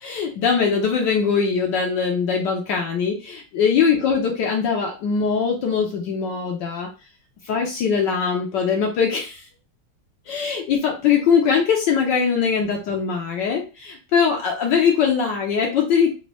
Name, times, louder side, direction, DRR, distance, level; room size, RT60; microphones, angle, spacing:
voice 1, 0.0-6.9 7.4-9.4 10.3-16.1, left 6 dB, 70° left, 0 dB, 1.3 m, -21 dB
4.1 x 2.2 x 2.9 m, 0.32 s
omnidirectional pair, 2.1 m